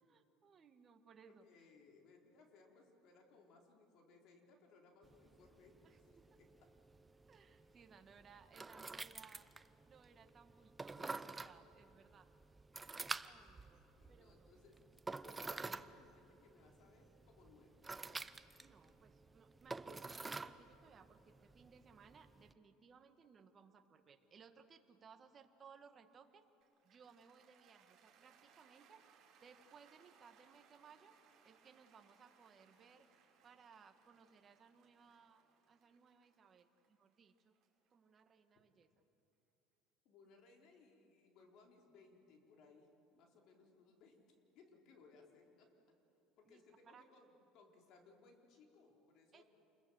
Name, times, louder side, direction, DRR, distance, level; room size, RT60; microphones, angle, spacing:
voice 1, 0.0-1.4 5.8-6.3 7.3-9.5 9.8-12.3 13.2-13.8 14.1-14.5 18.6-26.5 26.8-29.0 29.4-31.2 31.4-33.1 33.4-37.5 37.9-38.9 46.4-47.0 49.3-49.4, right 6 dB, 30° right, 7 dB, 1.6 m, -63 dB
voice 2, 1.2-6.7 14.0-14.8 15.4-17.8 40.0-45.7 46.4-49.4, left 4 dB, 55° left, 1 dB, 4.3 m, -66 dB
sound 1, 5.0-22.5, right 3 dB, 15° right, 0.6 m, -50 dB
Cheering / Applause, 26.6-38.8, right 6 dB, 50° right, 5.9 m, -70 dB
28.0 x 21.5 x 7.9 m, 2.8 s
cardioid pair, 135°, 0 cm